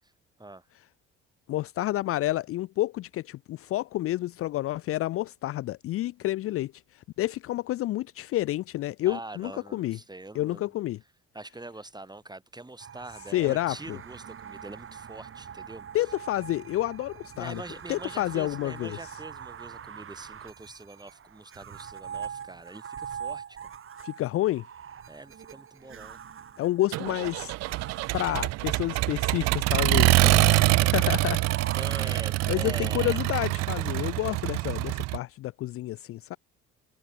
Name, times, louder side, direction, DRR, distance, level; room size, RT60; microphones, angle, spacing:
voice 1, 1.5-10.0 10.3-11.0 13.3-14.0 15.9-17.6 17.9-19.0 24.0-24.6 26.6-27.5 28.1-31.4 32.1-32.2 32.5-36.4, left 15 dB, 50° left, 0.5 m, -29 dB
voice 2, 9.0-10.7 11.3-15.9 17.3-23.7 25.1-26.2 31.7-33.2, right 2 dB, 15° right, 6.3 m, -43 dB
sound 1, 12.8-32.1, right 8 dB, 45° right, 3.7 m, -43 dB
Accelerating revving vroom, 26.9-35.2, right 20 dB, 60° right, 0.5 m, -25 dB
sound 2, 30.2-32.2, left 5 dB, 20° left, 0.8 m, -40 dB
hypercardioid pair, 65°, 29 cm